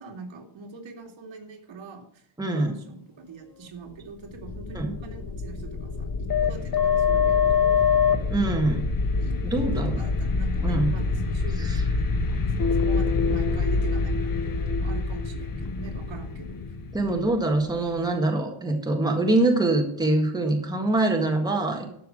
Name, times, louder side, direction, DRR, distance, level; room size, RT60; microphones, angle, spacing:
voice 1, 0.0-7.9 9.1-14.4 14.7-16.6, right 4 dB, 75° right, 3 dB, 2.6 m, -42 dB
voice 2, 2.4-2.7 4.7-4.9 8.3-8.8 9.4-9.9 10.6-10.9 11.6-11.8 16.9-21.9, right 2 dB, 10° right, 2 dB, 1.6 m, -24 dB
sound 1, 4.2-17.9, left 5 dB, 45° left, 1.2 m, -25 dB
13.0 x 5.7 x 7.5 m, 0.73 s
wide cardioid pair, 170°, 47 cm